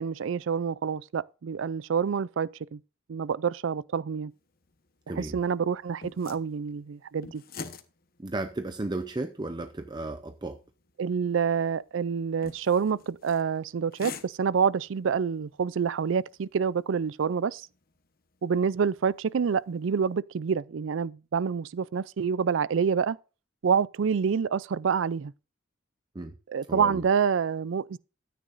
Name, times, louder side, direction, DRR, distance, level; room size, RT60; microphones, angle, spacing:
voice 1, 0.0-2.8 3.1-4.3 5.2-7.4 11.0-17.7 18.4-23.2 23.6-25.3 26.5-28.0, right 6 dB, 70° right, 0.4 m, -27 dB
sound 1, 4.3-20.1, left 4 dB, 50° left, 1.1 m, -50 dB
voice 2, 5.1-5.4 8.2-10.6 26.1-26.3 26.7-27.0, right 2 dB, 20° right, 0.6 m, -34 dB
13.5 x 9.4 x 2.6 m
head